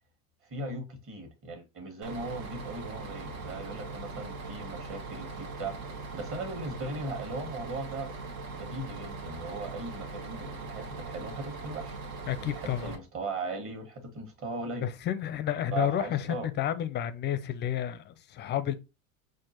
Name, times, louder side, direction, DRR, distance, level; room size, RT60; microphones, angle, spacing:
voice 1, 0.5-8.1 8.4-12.0 12.5-14.9 15.7-16.5, right 2 dB, 30° right, 1.6 m, -38 dB
Bus, 2.0-13.0, right 3 dB, 75° right, 1.1 m, -40 dB
voice 2, 12.3-13.0 14.8-18.7, left 11 dB, 25° left, 0.5 m, -31 dB
5.9 x 2.5 x 2.9 m
hypercardioid pair, 100°, 42 cm